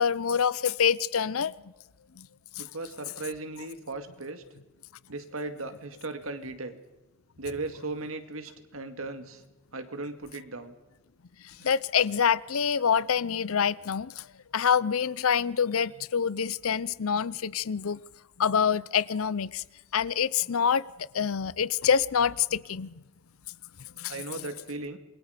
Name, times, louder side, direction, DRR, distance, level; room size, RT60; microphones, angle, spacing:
voice 1, 0.0-1.5 2.2-2.3 2.6-2.7 11.6-14.1 14.5-18.0 18.4-19.6 19.9-20.8 21.1-22.9 24.0-24.1, left 7 dB, 80° left, 0.6 m, -26 dB
voice 2, 2.6-4.4 5.1-6.8 7.4-9.4 9.7-10.8 11.6-11.7 24.1-25.0, right 3 dB, 75° right, 2.2 m, -37 dB
27.5 x 22.5 x 5.1 m
head